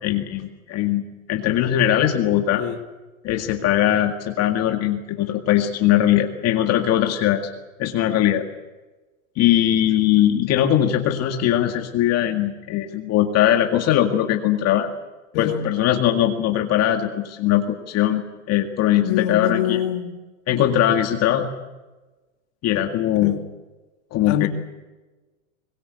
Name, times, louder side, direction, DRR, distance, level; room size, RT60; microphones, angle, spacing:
voice 1, 0.0-1.0 1.3-2.6 3.2-7.5 7.8-8.4 9.4-14.9 15.4-19.8 20.5-21.5 22.6-23.4 24.1-24.5, left 11 dB, 40° left, 3 dB, 2.0 m, -20 dB
voice 2, 15.3-15.7 19.0-20.2 23.2-23.4 24.3-24.5, left 11 dB, 60° left, 6 dB, 2.5 m, -25 dB
22.5 x 21.0 x 8.1 m, 1.2 s
supercardioid pair, 125°, 37 cm